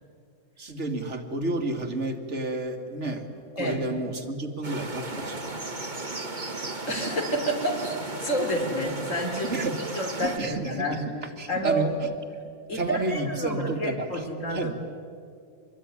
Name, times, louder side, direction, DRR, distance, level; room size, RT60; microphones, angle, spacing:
voice 1, 0.6-3.3 3.6-5.6 9.5-11.0 11.4-12.1 12.7-14.2 14.5-14.7, right 2 dB, 65° right, 5 dB, 2.5 m, -31 dB
sound 1, 4.6-10.4, right 2 dB, 35° right, 2.2 m, -35 dB
voice 2, 6.9-9.5 10.0-11.0 11.5-12.1 12.7-14.7, right 1 dB, 75° left, 3 dB, 4.1 m, -29 dB
25.5 x 21.0 x 9.8 m, 2.3 s
omnidirectional pair, 1.3 m